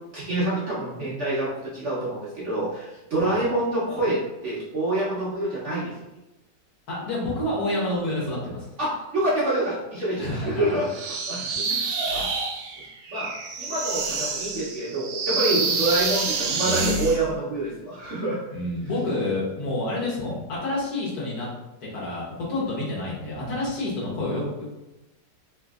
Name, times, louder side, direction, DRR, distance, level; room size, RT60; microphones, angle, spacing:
voice 1, 0.1-5.9 8.8-12.3 13.1-13.3 13.6-18.4, right 1 dB, 55° right, -8 dB, 0.9 m, -27 dB
voice 2, 6.9-8.7 10.2-10.8 11.9-12.0 18.5-21.5 21.8-24.7, left 2 dB, 65° left, -5 dB, 1.5 m, -28 dB
sound 1, 10.9-17.2, right 4 dB, 80° right, 1.3 m, -27 dB
3.4 x 3.0 x 2.3 m, 0.98 s
omnidirectional pair, 1.9 m